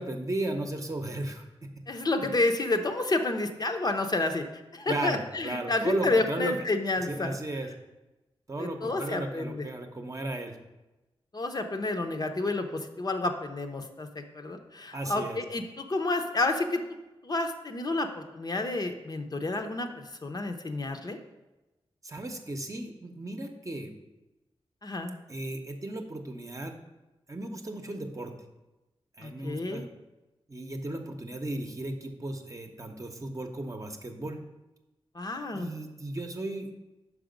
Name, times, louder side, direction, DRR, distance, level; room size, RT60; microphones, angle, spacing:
voice 1, 0.0-1.5 4.9-6.6 7.0-7.7 8.5-10.6 14.9-15.4 22.0-23.9 25.3-26.8 27.3-28.3 29.2-29.9 30.5-34.4 35.5-36.7, right 2 dB, 35° right, 4 dB, 0.8 m, -35 dB
voice 2, 1.9-4.4 4.7-7.4 8.6-9.7 11.3-16.8 17.2-21.2 24.8-25.2 29.2-29.9 35.1-35.7, left 2 dB, 40° left, 5 dB, 0.7 m, -30 dB
5.7 x 4.8 x 5.1 m, 1.0 s
wide cardioid pair, 70°, 10 cm